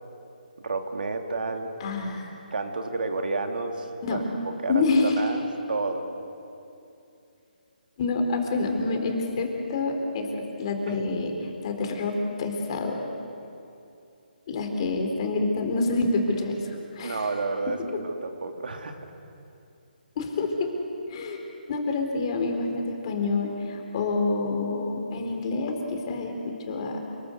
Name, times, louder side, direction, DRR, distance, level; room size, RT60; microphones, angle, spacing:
voice 1, 0.6-1.7 2.5-4.2 4.6-5.4 5.7-6.1 10.9-11.0 17.0-19.0, right 3 dB, 70° right, 4 dB, 2.9 m, -30 dB
voice 2, 1.8-2.3 4.0-4.2 4.7-5.2 8.0-13.0 14.5-17.3 20.2-20.7 21.1-27.0, left 3 dB, 35° left, 3 dB, 4.1 m, -27 dB
28.5 x 20.5 x 8.2 m, 2.6 s
hypercardioid pair, 155°, 5 cm